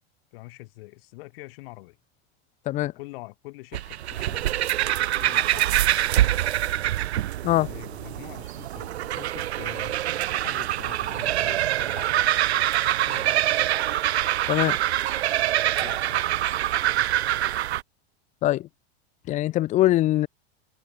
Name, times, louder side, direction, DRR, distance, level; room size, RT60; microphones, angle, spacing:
voice 1, 0.3-2.0 2.8-4.8 5.2-6.0 7.5-10.2 10.4-12.1 12.9-13.5 15.8-16.4, left 23 dB, 65° left, 6.9 m, -44 dB
sound 1, 3.7-17.8, right 13 dB, 90° right, 0.9 m, -25 dB
voice 2, 19.3-20.3, left 15 dB, 25° left, 0.4 m, -22 dB
hypercardioid pair, 115°, 32 cm